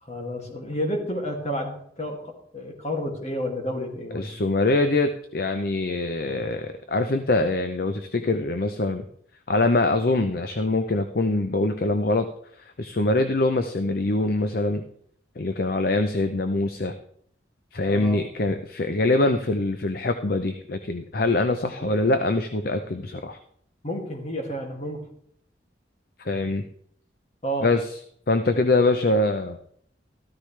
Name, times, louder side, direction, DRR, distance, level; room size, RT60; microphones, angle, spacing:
voice 1, 0.0-4.4 17.9-18.2 21.8-22.0 23.8-25.0 27.4-27.7, equal, 35° left, 2 dB, 2.3 m, -31 dB
voice 2, 4.1-9.0 9.5-12.3 12.6-14.8 15.4-16.9 17.7-23.4 26.2-26.6 27.6-27.9 28.3-29.6, left 2 dB, 50° left, 8 dB, 0.7 m, -24 dB
14.0 x 13.5 x 3.3 m, 0.65 s
head